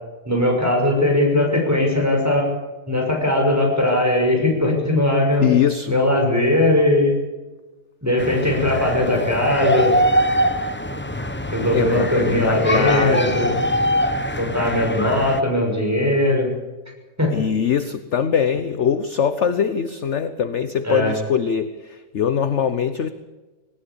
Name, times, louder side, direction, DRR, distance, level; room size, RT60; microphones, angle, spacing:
voice 1, 0.3-2.5 2.9-5.5 5.9-7.1 8.0-10.0 11.5-13.5 14.4-16.5 17.2-17.3 20.8-21.1, left 1 dB, 10° right, 1 dB, 6.2 m, -19 dB
voice 2, 5.4-6.0 11.7-13.3 17.3-23.1, left 7 dB, 50° left, 11 dB, 1.1 m, -22 dB
sound 1, 8.2-15.4, equal, 10° left, 0.7 m, -23 dB
19.5 x 19.0 x 8.5 m, 1.2 s
omnidirectional pair, 1.7 m